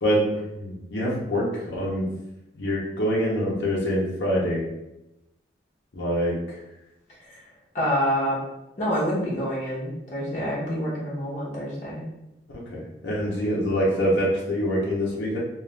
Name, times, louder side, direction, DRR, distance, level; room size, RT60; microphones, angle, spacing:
voice 1, 0.5-2.1 2.5-4.7 5.9-6.3 12.7-15.4, equal, 85° left, -5 dB, 0.7 m, -25 dB
voice 2, 7.7-8.4 8.8-12.0, equal, 45° left, -7 dB, 0.9 m, -27 dB
2.4 x 2.3 x 3.2 m, 0.91 s
head